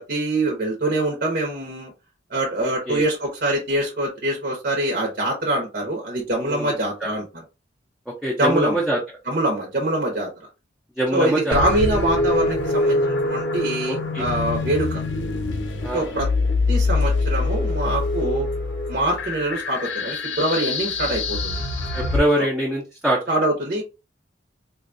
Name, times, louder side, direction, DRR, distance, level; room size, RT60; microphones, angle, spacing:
voice 1, 0.0-1.9 2.3-7.3 8.4-8.8 9.3-10.3 11.1-15.0 15.9-16.3 16.7-18.5 18.9-21.6 22.4-22.5 23.3-23.8, right 1 dB, 55° right, -1 dB, 0.9 m, -24 dB
voice 2, 2.6-3.0 6.3-7.1 8.2-9.0 11.0-11.6 13.9-14.2 15.8-16.2 21.9-23.2, right 1 dB, 5° right, -4 dB, 0.6 m, -24 dB
sound 1, 11.5-22.2, left 2 dB, 85° left, 0.7 m, -24 dB
3.9 x 2.3 x 2.6 m, 0.28 s
head